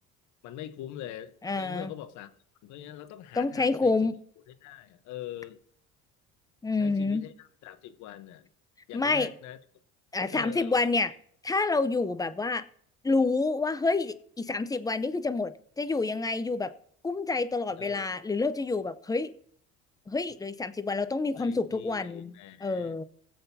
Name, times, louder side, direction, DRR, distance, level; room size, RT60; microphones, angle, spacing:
voice 1, 0.4-2.3 2.6-3.9 4.6-5.6 6.8-8.5 8.9-9.6 10.3-10.8 17.8-18.2 21.3-23.0, left 12 dB, 70° left, 1.0 m, -43 dB
voice 2, 1.4-1.9 3.4-4.2 6.6-7.2 8.9-9.3 10.1-11.1 11.4-12.6 13.0-16.7 17.0-19.3 20.1-22.3 22.6-23.0, left 3 dB, 10° left, 0.6 m, -28 dB
20.5 x 7.8 x 2.7 m
cardioid pair, 100°, 30 cm